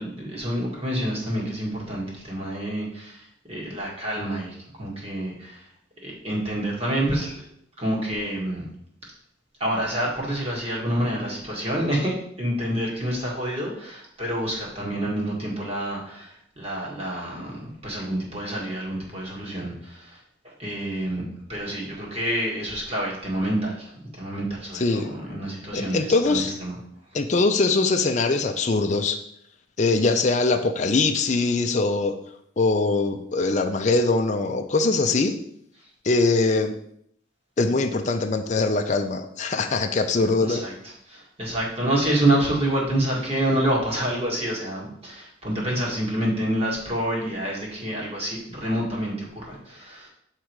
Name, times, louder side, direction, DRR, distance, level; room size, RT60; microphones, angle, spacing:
voice 1, 0.0-3.2 3.5-5.5 6.0-7.4 7.8-8.6 9.6-16.3 16.6-20.0 20.6-21.2 21.5-23.9 24.2-26.7 40.4-40.7 41.1-50.1, right 1 dB, 30° right, -3 dB, 1.9 m, -27 dB
voice 2, 24.7-25.1 25.7-26.5 27.1-29.2 29.8-32.1 32.6-35.3 36.0-36.8 37.6-40.6, left 3 dB, 35° left, 5 dB, 0.5 m, -22 dB
7.9 x 3.7 x 4.6 m, 0.70 s
head